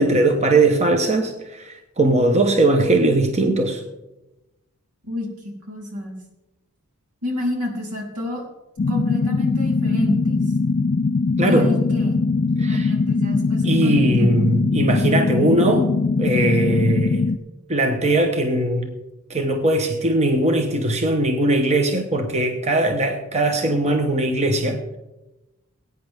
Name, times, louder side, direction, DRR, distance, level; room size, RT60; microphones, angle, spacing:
voice 1, 0.0-3.8 11.4-11.7 12.6-12.9 13.6-15.9 16.2-17.2 17.7-18.9 19.3-25.0, right 2 dB, 30° right, 5 dB, 1.0 m, -20 dB
voice 2, 5.0-6.2 7.2-8.5 8.9-10.4 11.4-12.2 12.6-14.5, left 1 dB, 80° right, -1 dB, 3.7 m, -28 dB
sound 1, 8.8-17.4, left 4 dB, 40° left, 0.4 m, -21 dB
19.5 x 9.3 x 3.5 m, 1.0 s
head